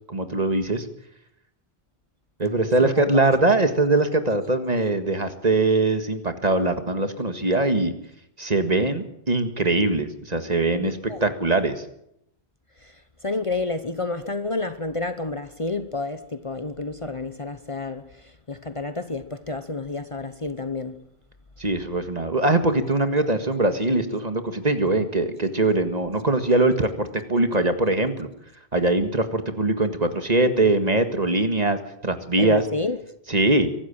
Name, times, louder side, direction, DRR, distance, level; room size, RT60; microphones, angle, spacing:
voice 1, 0.1-0.9 2.4-7.9 8.4-11.8 21.6-28.3 28.7-32.6 33.3-33.7, right 2 dB, 40° right, 1.9 m, -22 dB
voice 2, 2.8-3.2 10.7-11.2 12.8-13.0 13.2-21.0 32.4-33.0, left 3 dB, 30° left, 1.0 m, -30 dB
24.0 x 12.5 x 8.8 m
omnidirectional pair, 1.1 m